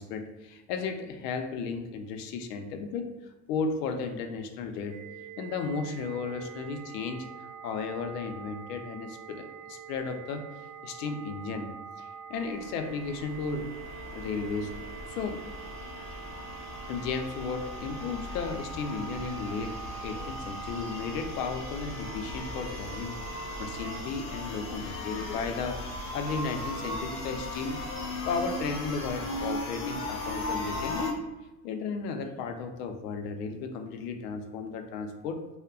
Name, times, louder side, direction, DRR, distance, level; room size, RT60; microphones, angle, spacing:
voice 1, 0.0-3.1 3.5-5.0 5.4-7.3 7.6-10.5 10.8-11.7 12.0-13.7 14.1-14.7 15.1-15.4 16.9-19.8 20.0-28.0 28.3-31.2 31.6-35.4, left 4 dB, 70° left, 6 dB, 0.5 m, -34 dB
sound 1, 4.9-24.0, right 7 dB, 40° right, 0.5 m, -45 dB
sound 2, 12.4-31.1, left 2 dB, 25° left, 0.6 m, -38 dB
2.2 x 2.1 x 3.5 m, 1.1 s
hypercardioid pair, 80°, 49 cm